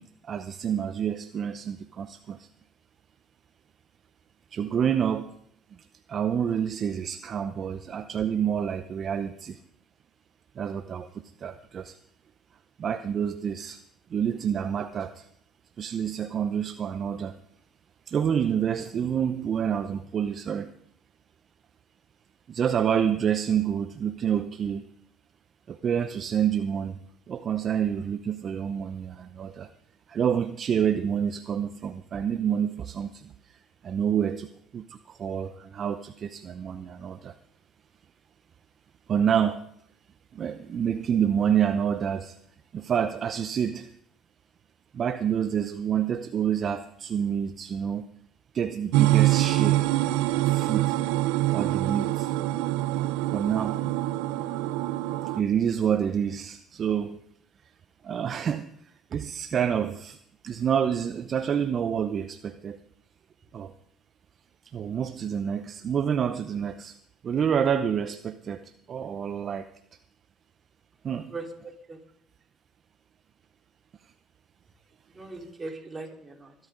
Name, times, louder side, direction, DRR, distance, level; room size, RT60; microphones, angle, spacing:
voice 1, 0.0-2.5 4.5-5.4 6.1-9.6 10.5-12.0 12.8-13.8 14.1-15.3 15.8-17.4 18.1-20.7 22.5-24.9 25.7-27.0 27.3-29.7 30.1-37.4 39.1-39.6 40.3-42.4 42.7-43.9 44.9-48.1 48.5-49.9 50.3-51.0 51.5-52.3 53.3-53.8 55.2-57.2 57.6-57.7 58.0-60.2 60.4-62.8 63.5-63.7 64.6-67.0 67.2-69.7 71.0-71.3 74.0-74.1, right 8 dB, 45° right, 10 dB, 0.8 m, -28 dB
sound 1, 48.9-55.4, right 16 dB, 80° right, 0.7 m, -25 dB
voice 2, 71.3-72.0 75.1-76.6, right 3 dB, 25° right, 0 dB, 4.1 m, -40 dB
21.5 x 12.5 x 3.9 m, 0.68 s
supercardioid pair, 75°, 0 cm